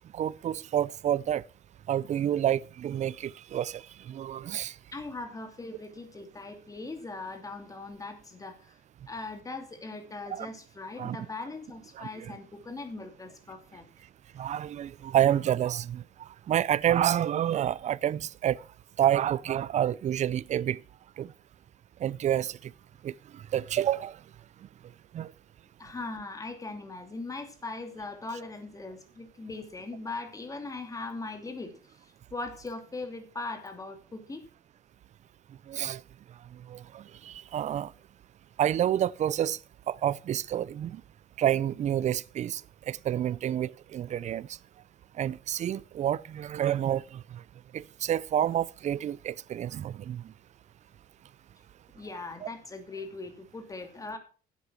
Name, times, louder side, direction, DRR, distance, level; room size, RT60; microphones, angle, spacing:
voice 1, 0.1-1.4 1.9-4.7 10.3-10.5 11.0-11.2 12.0-12.4 14.4-18.6 19.0-20.8 21.2-21.3 22.0-22.7 23.0-24.2 25.1-25.3 35.7-36.0 36.7-37.9 38.6-39.6 39.9-41.0 41.4-42.6 42.9-44.5 45.2-47.4 47.7-50.2 52.4-52.5, right 11 dB, 45° right, 0.5 m, -29 dB
voice 2, 4.9-8.7 9.1-13.9 25.8-34.4 51.9-54.2, left 3 dB, 20° left, 2.7 m, -40 dB
10.0 x 8.4 x 6.0 m
cardioid pair, 110°, 17 cm